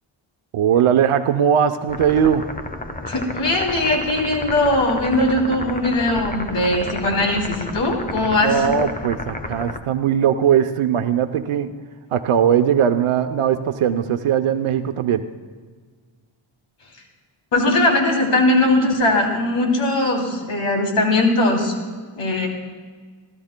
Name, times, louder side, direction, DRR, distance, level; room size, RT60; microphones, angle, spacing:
voice 1, 0.5-2.5 8.4-11.7 12.1-15.2, right 8 dB, 80° right, 7 dB, 0.7 m, -19 dB
sound 1, 1.9-9.8, left 2 dB, 20° left, 0.6 m, -32 dB
voice 2, 3.1-8.6 17.5-21.7 22.1-22.5, left 2 dB, 80° left, 0 dB, 3.0 m, -20 dB
27.0 x 13.5 x 2.2 m, 1.5 s
wide cardioid pair, 175°, 49 cm